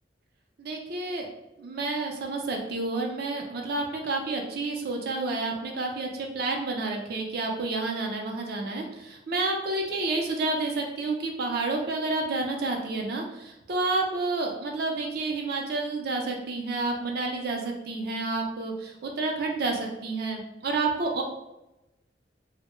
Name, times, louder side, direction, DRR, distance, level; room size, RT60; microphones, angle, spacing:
voice 1, 0.6-1.3 1.6-21.2, right 3 dB, 60° right, 1 dB, 0.4 m, -30 dB
2.1 x 2.0 x 3.0 m, 0.94 s
head